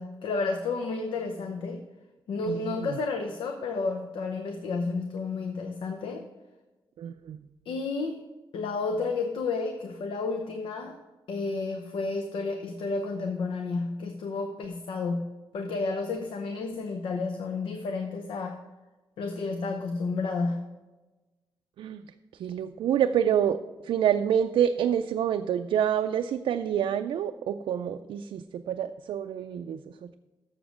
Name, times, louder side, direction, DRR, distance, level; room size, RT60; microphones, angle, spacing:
voice 1, 0.0-1.9 2.3-6.2 7.7-8.2 8.5-11.0 11.3-18.6 19.2-20.7, left 3 dB, 90° left, 5 dB, 0.7 m, -31 dB
voice 2, 2.4-3.0 7.0-7.5 21.8-22.0 22.3-30.1, right 9 dB, 85° right, 7 dB, 0.3 m, -27 dB
7.1 x 6.9 x 6.2 m, 1.2 s
wide cardioid pair, 125°, 8 cm